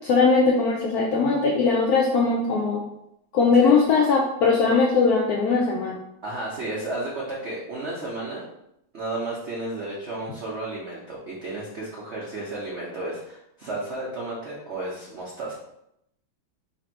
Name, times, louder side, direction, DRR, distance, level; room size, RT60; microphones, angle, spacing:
voice 1, 0.0-2.8 3.3-6.0, left 4 dB, 90° left, -2 dB, 0.8 m, -20 dB
voice 2, 6.2-8.5 8.9-15.5, right 2 dB, 70° right, -5 dB, 0.6 m, -33 dB
3.3 x 2.6 x 4.4 m, 0.80 s
omnidirectional pair, 2.2 m